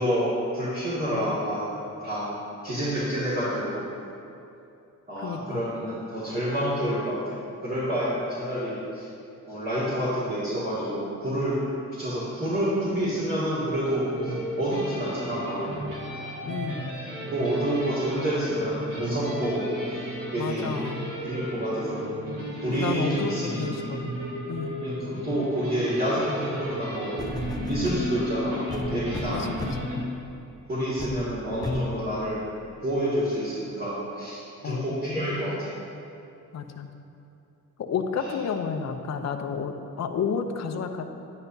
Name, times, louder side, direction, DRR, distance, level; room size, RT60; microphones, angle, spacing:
voice 1, 0.0-1.7 2.0-2.3 2.6-3.8 5.1-7.2 7.6-9.1 9.5-11.6 11.9-15.8 17.3-20.0 20.3-20.7 21.2-22.0 22.6-23.7 24.8-27.2 27.7-29.4 30.7-32.4 32.8-35.7 38.2-38.3, equal, 30° right, -12 dB, 2.2 m, -28 dB
voice 2, 5.2-5.6 16.4-16.9 20.4-21.2 22.7-24.1 24.5-24.8 29.3-29.5 29.8-30.0 34.6-35.0 36.5-36.9 37.8-41.0, left 6 dB, 55° left, 6 dB, 0.7 m, -31 dB
sound 1, 14.1-30.0, equal, 85° right, 2.3 m, -34 dB
sound 2, 26.7-26.8 27.2-28.1 28.7-30.0 30.5-30.6 31.0-31.2 31.6-31.9 32.6-32.7, left 2 dB, 10° left, 0.4 m, -33 dB
10.5 x 9.9 x 2.7 m, 2.7 s
wide cardioid pair, 140°, 32 cm